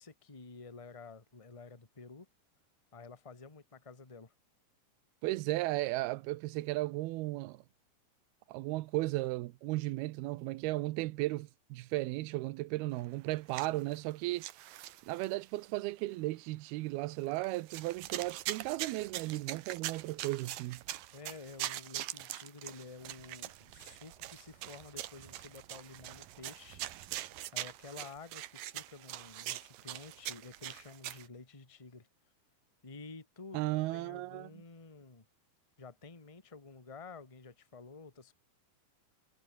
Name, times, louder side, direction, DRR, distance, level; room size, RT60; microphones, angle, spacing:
voice 1, 0.0-2.3 2.9-4.3 21.1-26.8 27.5-32.1 32.8-33.6 33.9-35.2 35.8-38.3, left 4 dB, 15° left, 1.4 m, -51 dB
voice 2, 5.2-7.6 8.5-14.5 15.1-20.8 33.5-34.5, right 19 dB, 90° right, 2.7 m, -35 dB
sound 1, 13.4-14.1 14.4-15.4 16.0-16.1 17.3-31.3, right 14 dB, 70° right, 2.7 m, -43 dB
omnidirectional pair, 4.4 m